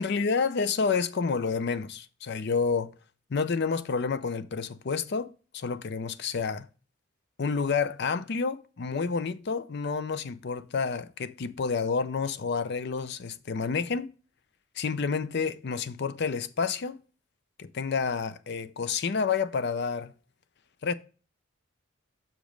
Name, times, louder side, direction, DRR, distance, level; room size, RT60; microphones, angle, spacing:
voice 1, 0.0-2.9 3.3-6.7 7.4-14.1 14.8-17.0 17.6-20.1 20.8-20.9, left 5 dB, 50° left, 0.5 m, -29 dB
6.2 x 5.1 x 5.1 m
head